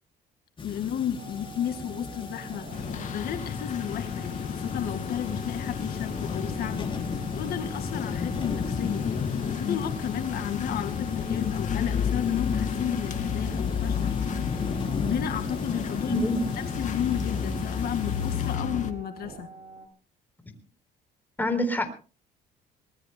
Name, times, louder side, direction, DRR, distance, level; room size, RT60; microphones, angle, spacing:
voice 1, 0.6-2.7 3.1-6.9 7.4-14.1 15.0-16.2 16.6-19.5, left 9 dB, 65° left, 7 dB, 2.0 m, -33 dB
sound 1, 0.6-18.6, left 4 dB, 30° left, 3.8 m, -37 dB
sound 2, 1.2-19.9, right 4 dB, 55° right, 5.6 m, -46 dB
sound 3, 2.7-18.9, left 7 dB, 45° left, 2.2 m, -31 dB
voice 2, 16.1-16.4 20.5-20.6 21.4-21.9, left 1 dB, 10° left, 6 dB, 4.1 m, -26 dB
25.5 x 20.0 x 2.2 m, 0.35 s
cardioid pair, 110°, 17 cm